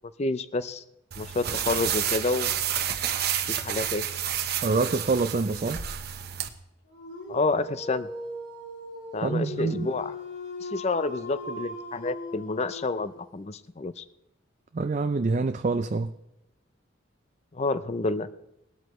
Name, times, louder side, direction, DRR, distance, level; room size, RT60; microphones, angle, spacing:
voice 1, 0.2-0.8 1.2-2.5 3.5-4.0 7.3-8.1 9.1-10.1 10.6-14.0 17.5-18.3, left 3 dB, 35° left, 0.5 m, -29 dB
sound 1, 1.1-6.5, right 9 dB, 55° right, 0.9 m, -30 dB
voice 2, 4.6-5.8 9.2-9.9 14.7-16.1, right 3 dB, 40° right, 0.4 m, -26 dB
Dog, 6.9-13.3, left 1 dB, 70° left, 3.8 m, -39 dB
19.0 x 12.5 x 3.1 m
head